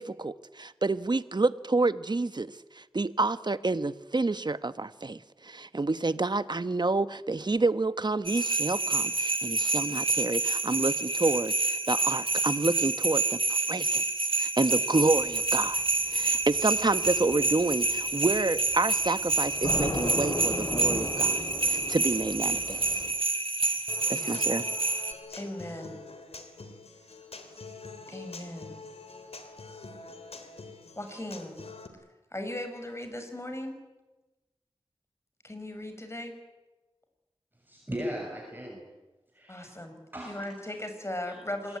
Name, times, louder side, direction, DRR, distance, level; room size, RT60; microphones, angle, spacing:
voice 1, 0.0-14.0 14.4-15.8 16.1-22.8 24.1-24.6, right 3 dB, 45° right, 13 dB, 1.2 m, -29 dB
sound 1, 8.3-25.1, right 3 dB, 60° right, 2.1 m, -28 dB
sound 2, 15.0-23.1, left 1 dB, 55° left, 7.6 m, -37 dB
Human voice / Acoustic guitar, 23.9-31.9, left 3 dB, 80° left, 3.2 m, -45 dB
voice 2, 25.3-26.0 28.1-28.7 31.0-31.5 32.3-33.8 35.4-36.4 39.5-40.0 40.2-41.8, left 1 dB, 25° left, 7 dB, 6.0 m, -38 dB
voice 3, 37.7-38.8 39.3-39.8 40.1-40.5 41.3-41.4 41.7-41.8, equal, 20° right, 0 dB, 6.6 m, -37 dB
26.0 x 21.0 x 9.7 m, 1.1 s
wide cardioid pair, 60°, 10 cm